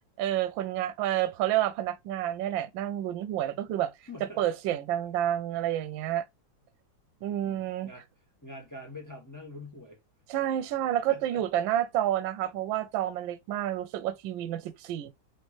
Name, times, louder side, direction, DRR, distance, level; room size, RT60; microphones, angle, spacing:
voice 1, 0.2-3.9 4.4-6.2 7.2-7.9 10.3-15.1, right 12 dB, 90° right, 1.3 m, -29 dB
voice 2, 4.1-4.4 7.4-10.0 11.1-11.4, left 2 dB, 15° left, 0.7 m, -45 dB
4.3 x 3.1 x 3.0 m
omnidirectional pair, 2.0 m